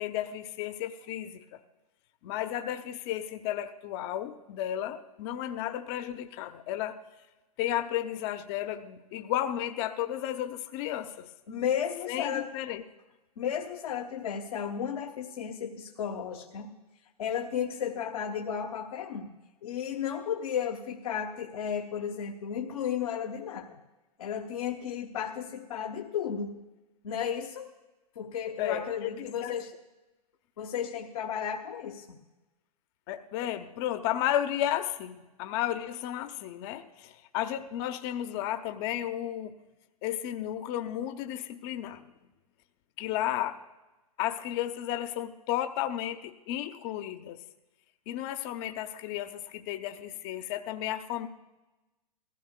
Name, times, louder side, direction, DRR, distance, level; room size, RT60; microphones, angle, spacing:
voice 1, 0.0-1.6 2.2-7.0 7.6-11.3 12.1-12.8 28.6-29.5 33.1-39.6 40.0-42.0 43.0-43.6 44.2-47.4 48.1-51.3, left 12 dB, 45° left, 9 dB, 0.8 m, -33 dB
voice 2, 11.5-12.5 13.4-16.7 17.2-19.3 19.6-23.8 24.2-26.6 27.0-27.7 28.1-29.7 30.6-32.2, left 8 dB, 65° left, 2 dB, 1.1 m, -33 dB
21.5 x 15.5 x 2.2 m, 1.1 s
hypercardioid pair, 110°, 20 cm